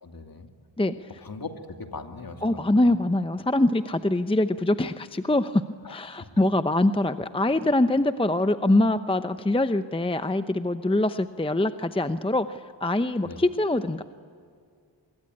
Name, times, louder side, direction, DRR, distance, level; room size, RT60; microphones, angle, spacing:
voice 1, 0.0-0.5 1.2-3.0 5.8-6.2 13.2-13.4, left 3 dB, 50° left, 5 dB, 2.7 m, -40 dB
voice 2, 0.8-1.1 2.4-5.6 5.9-14.0, left 1 dB, 10° left, 11 dB, 0.8 m, -24 dB
25.0 x 22.5 x 9.8 m, 2.2 s
cardioid pair, 70°, 46 cm